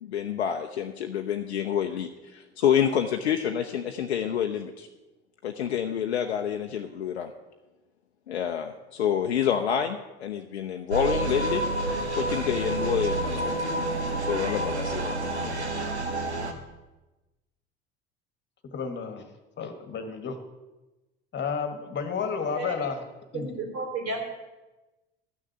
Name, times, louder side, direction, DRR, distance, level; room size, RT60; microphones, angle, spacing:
voice 1, 0.0-4.9 5.4-7.3 8.3-11.6 12.2-13.5 14.2-15.2, left 8 dB, 75° left, 5 dB, 0.7 m, -28 dB
sound 1, 10.9-16.5, right 2 dB, 85° right, 1.1 m, -29 dB
voice 2, 18.7-19.2 19.6-20.4 21.3-23.0 23.3-23.5, left 5 dB, 35° left, 8 dB, 1.6 m, -31 dB
voice 3, 23.3-24.3, right 3 dB, 50° right, 1 dB, 3.6 m, -32 dB
12.5 x 6.6 x 7.5 m, 1.1 s
figure-of-eight pair, 65°, 33 cm